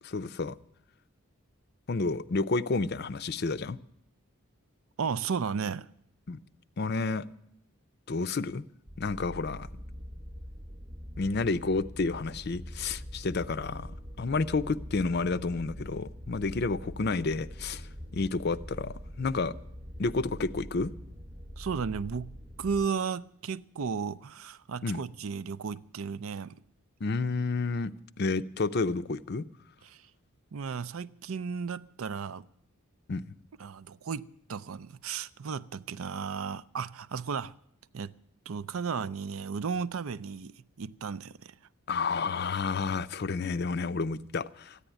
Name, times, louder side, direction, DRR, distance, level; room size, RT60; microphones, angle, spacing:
voice 1, 0.0-0.6 1.9-3.8 6.3-6.4 6.8-7.3 8.1-8.6 9.0-9.7 11.2-13.9 14.2-19.5 20.0-20.9 24.8-25.0 27.0-27.9 28.2-29.4 33.1-33.2 41.9-44.8, left 3 dB, 45° left, 0.5 m, -30 dB
voice 2, 5.0-5.9 21.6-26.6 29.8-30.0 30.5-32.5 33.6-37.5 37.9-38.1 38.5-41.5, right 6 dB, 75° right, 0.5 m, -34 dB
sound 1, 8.9-22.9, equal, 30° right, 0.9 m, -44 dB
14.0 x 9.9 x 9.1 m
head